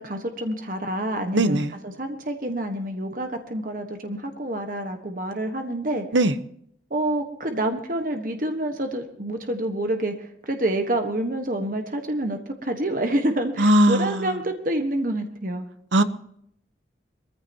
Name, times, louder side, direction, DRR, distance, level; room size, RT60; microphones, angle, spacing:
voice 1, 0.0-6.0 6.9-15.7, right 1 dB, 45° right, 1.4 m, -28 dB
voice 2, 1.3-1.7 6.1-6.3 13.6-14.3 15.9-16.0, right 1 dB, 85° right, 1.0 m, -19 dB
22.0 x 14.5 x 2.9 m
head